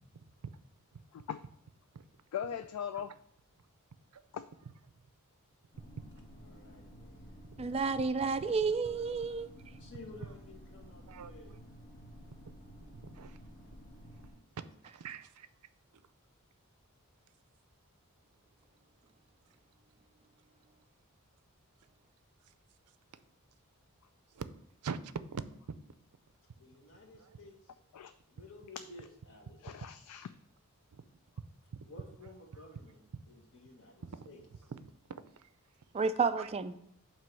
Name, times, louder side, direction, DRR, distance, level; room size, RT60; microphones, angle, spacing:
voice 1, 2.3-3.1 4.3-4.4 27.9-28.1 29.6-30.3, left 8 dB, 85° left, 10 dB, 0.3 m, -39 dB
sound 1, 5.7-14.3, equal, 40° left, 1.7 m, -53 dB
voice 2, 6.3-8.0 9.8-11.5 26.5-27.7 28.3-29.6 31.9-33.0 33.3-34.4, left 2 dB, 55° left, 0 dB, 1.5 m, -54 dB
voice 3, 7.6-9.5 35.9-36.7, right 4 dB, 25° right, 11 dB, 0.3 m, -31 dB
voice 4, 11.1-11.6 12.4-12.6 12.8-13.4 14.5-14.6 14.9-15.5 24.3-24.5 24.8-25.4 27.1-27.4 30.9-31.0 33.1-33.2 34.0-34.3 34.7-34.8 35.4-35.5 36.4-36.5, right 5 dB, 85° right, 13 dB, 0.5 m, -43 dB
7.5 x 3.0 x 6.1 m, 0.71 s
head